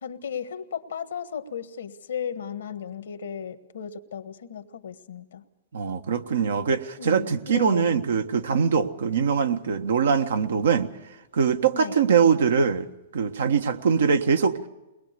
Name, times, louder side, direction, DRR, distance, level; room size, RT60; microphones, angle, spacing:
voice 1, 0.0-5.4 7.0-7.9 11.7-12.0, left 8 dB, 85° left, 10 dB, 1.5 m, -35 dB
voice 2, 5.7-10.9 11.3-12.9 13.1-14.6, right 6 dB, 80° right, 7 dB, 1.4 m, -22 dB
22.0 x 20.5 x 6.8 m, 1.0 s
hypercardioid pair, 130°, 0 cm